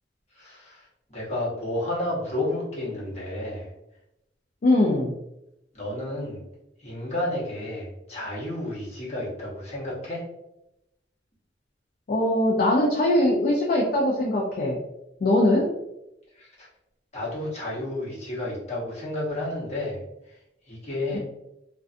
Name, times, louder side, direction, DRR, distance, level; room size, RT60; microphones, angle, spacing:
voice 1, 0.4-0.8 1.1-3.7 5.7-6.4 6.8-10.2 16.4-16.7 17.1-20.0 20.7-21.2, left 1 dB, 40° left, -6 dB, 1.0 m, -31 dB
voice 2, 4.6-5.1 12.1-14.8 15.2-15.7 21.1-21.2, left 1 dB, 55° left, -3 dB, 0.4 m, -21 dB
2.5 x 2.2 x 2.4 m, 0.85 s
head